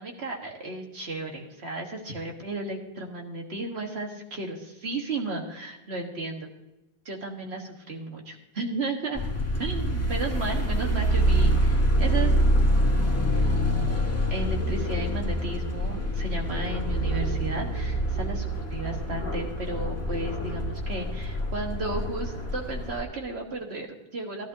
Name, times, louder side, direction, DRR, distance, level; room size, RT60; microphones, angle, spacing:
voice 1, 0.0-6.5 7.0-9.3 9.6-24.5, right 2 dB, 40° right, 2 dB, 1.6 m, -34 dB
sound 1, 9.1-23.0, equal, 10° left, 1.1 m, -26 dB
16.0 x 11.5 x 2.7 m, 0.99 s
omnidirectional pair, 1.9 m